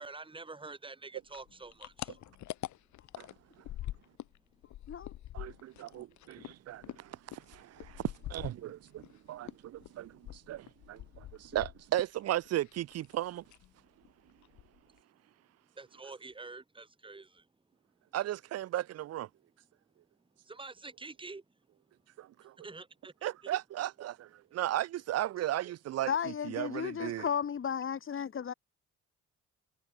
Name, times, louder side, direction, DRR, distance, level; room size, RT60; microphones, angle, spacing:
voice 1, 0.0-2.2 15.8-17.4 20.5-21.4 22.6-23.5, right 3 dB, 15° right, 2.2 m, -47 dB
sound 1, 1.3-4.4 4.6-9.1 9.4-12.2 12.5-13.2 13.5-13.7 14.0-14.1 14.4-15.0, left 14 dB, 70° left, 1.0 m, -44 dB
voice 2, 5.3-13.4 18.1-19.3 22.2-22.5 23.2-27.3, right 13 dB, 55° right, 0.6 m, -36 dB
voice 3, 26.1-28.5, left 7 dB, 45° left, 1.7 m, -34 dB
cardioid pair, 90°, 30 cm